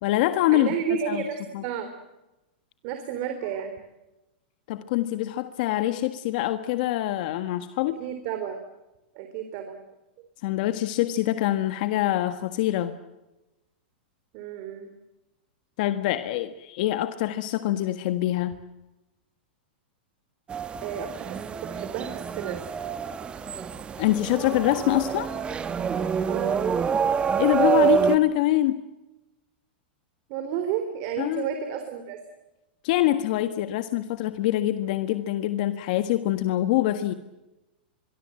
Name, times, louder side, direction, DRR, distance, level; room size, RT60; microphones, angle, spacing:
voice 1, 0.0-1.2 1.5-1.6 4.7-8.0 10.4-12.9 15.8-18.6 24.0-25.3 27.4-28.8 31.2-31.4 32.8-37.1, left 14 dB, 55° left, 9 dB, 1.5 m, -25 dB
voice 2, 0.5-1.9 2.8-3.8 8.0-8.6 9.2-9.8 14.3-14.9 20.8-22.6 26.3-26.6 30.3-32.2, right 8 dB, 45° right, 6 dB, 3.7 m, -32 dB
sound 1, 20.5-28.2, right 7 dB, 20° right, 1.6 m, -26 dB
25.0 x 23.5 x 7.8 m, 1.0 s
hypercardioid pair, 130°, 6 cm